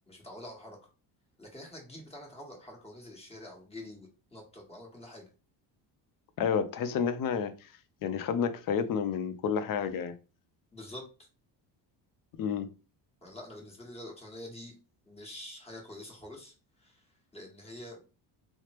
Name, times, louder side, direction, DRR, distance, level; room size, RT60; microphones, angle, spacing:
voice 1, 0.1-0.8 1.4-5.3 10.7-11.3 13.2-14.8 15.0-18.0, left 1 dB, 15° left, 1.2 m, -46 dB
voice 2, 6.4-7.7 8.0-10.1 12.4-12.7, left 7 dB, 45° left, 0.5 m, -30 dB
3.2 x 2.0 x 2.9 m
cardioid pair, 105°, 46 cm